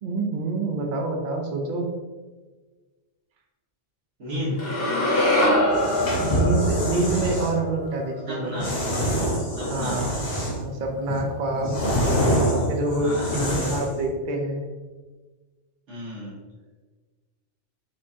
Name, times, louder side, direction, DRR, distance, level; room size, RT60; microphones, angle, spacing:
voice 1, 0.0-1.9 6.2-8.7 9.6-11.8 12.7-14.6, right 2 dB, 50° right, 2 dB, 0.7 m, -27 dB
voice 2, 4.2-4.6 8.3-8.8 9.4-10.0 13.0-13.7 15.9-16.4, left 1 dB, 75° right, -9 dB, 1.6 m, -32 dB
sound 1, 4.6-8.8, left 1 dB, 55° left, 1.2 m, -24 dB
sound 2, 5.7-7.5 8.6-10.7 11.1-14.0, equal, 70° left, 1.6 m, -25 dB
5.4 x 3.4 x 2.8 m, 1.3 s
omnidirectional pair, 1.2 m